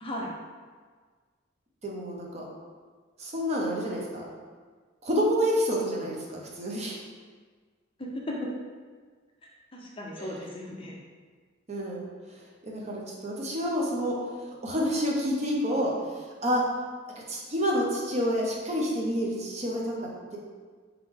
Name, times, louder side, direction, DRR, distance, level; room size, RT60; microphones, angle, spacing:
voice 1, 0.0-0.3 8.0-8.5 9.7-11.0, left 1 dB, 25° left, -2 dB, 0.6 m, -36 dB
voice 2, 1.8-2.4 3.2-4.3 5.0-7.0 10.2-10.3 11.7-12.1 12.6-14.2 14.5-16.6 17.3-20.0, equal, 35° right, -2 dB, 0.6 m, -28 dB
3.6 x 3.2 x 3.6 m, 1.5 s
head